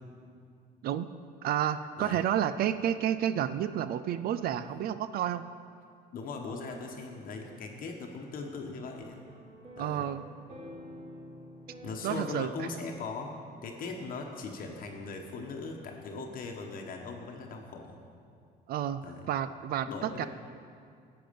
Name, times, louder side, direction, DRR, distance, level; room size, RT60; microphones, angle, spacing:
voice 1, 1.4-5.4 9.8-10.3 12.0-12.7 18.7-20.3, right 10 dB, 65° right, 13 dB, 0.4 m, -30 dB
voice 2, 6.1-9.3 9.8-10.1 11.8-13.3 13.6-18.0 19.0-19.3 19.9-20.3, left 4 dB, 55° left, 2 dB, 1.1 m, -39 dB
sound 1, 8.7-13.2, equal, 45° right, 2.4 m, -49 dB
11.5 x 7.8 x 5.2 m, 2.3 s
cardioid pair, 110°, 17 cm